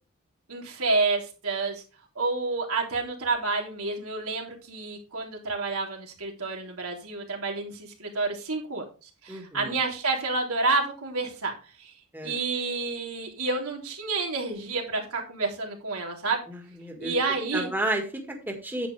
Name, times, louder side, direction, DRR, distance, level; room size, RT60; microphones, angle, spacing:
voice 1, 0.5-1.8 2.2-8.9 9.2-11.5 11.8-11.9 12.2-16.4 17.0-17.7, right 3 dB, 85° right, 1 dB, 3.6 m, -29 dB
voice 2, 9.3-9.8 12.1-12.4 16.5-17.2 17.5-18.9, right 1 dB, 10° right, 3 dB, 1.7 m, -32 dB
10.0 x 8.7 x 3.4 m, 0.33 s
head